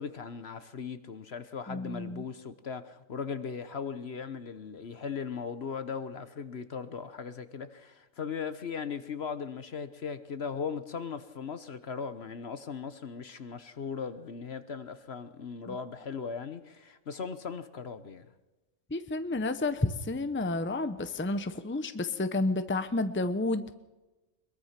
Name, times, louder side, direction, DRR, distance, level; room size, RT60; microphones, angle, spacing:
voice 1, 0.0-18.3, left 6 dB, 50° left, 1.2 m, -38 dB
voice 2, 1.7-2.2 18.9-23.7, left 2 dB, 10° left, 0.8 m, -30 dB
22.5 x 22.0 x 5.9 m
omnidirectional pair, 1.4 m